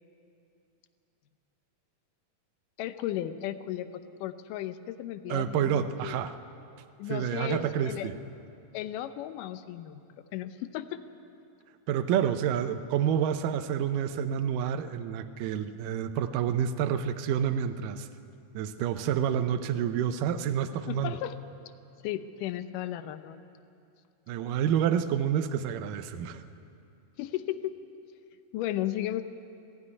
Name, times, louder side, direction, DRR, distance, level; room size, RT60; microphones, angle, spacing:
voice 1, 2.8-6.2 7.0-8.1 8.7-10.0 10.3-11.0 20.9-21.4 22.0-23.4 27.2-27.8 28.5-29.2, left 12 dB, 80° left, 11 dB, 2.3 m, -35 dB
voice 2, 5.3-6.4 7.1-8.2 11.9-18.1 18.5-21.2 24.3-26.4, right 9 dB, 85° right, 9 dB, 2.4 m, -28 dB
18.5 x 15.5 x 9.6 m, 2.6 s
omnidirectional pair, 3.8 m